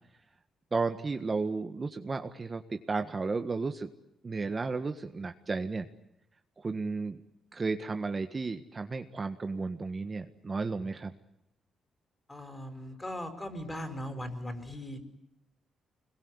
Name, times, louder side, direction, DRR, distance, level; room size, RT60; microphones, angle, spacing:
voice 1, 0.7-3.9 4.2-5.8 6.6-7.2 7.5-11.1, right 4 dB, 35° right, 7 dB, 1.6 m, -33 dB
voice 2, 12.3-15.0, left 1 dB, 20° left, 9 dB, 5.3 m, -39 dB
25.5 x 22.0 x 9.9 m, 0.82 s
cardioid pair, 75°, 0 cm